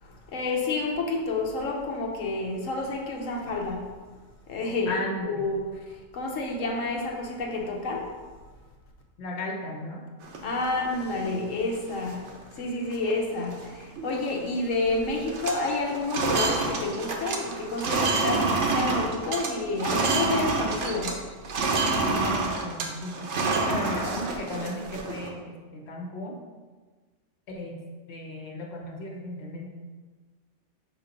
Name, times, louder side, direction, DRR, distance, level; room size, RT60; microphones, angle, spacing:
voice 1, 0.0-3.9 4.5-8.2 10.4-21.3, left 2 dB, 90° left, 1.2 m, -30 dB
voice 2, 4.9-5.5 9.2-10.0 22.1-23.3 23.6-26.4 27.5-29.7, left 1 dB, 60° left, 1.2 m, -35 dB
sound 1, 10.2-11.3 11.8-11.9 12.1-12.5 12.9-13.1 13.4-14.5 14.7-15.0 15.2-21.2 21.4-25.3, right 3 dB, 70° right, 1.1 m, -28 dB
6.5 x 2.9 x 5.1 m
omnidirectional pair, 1.3 m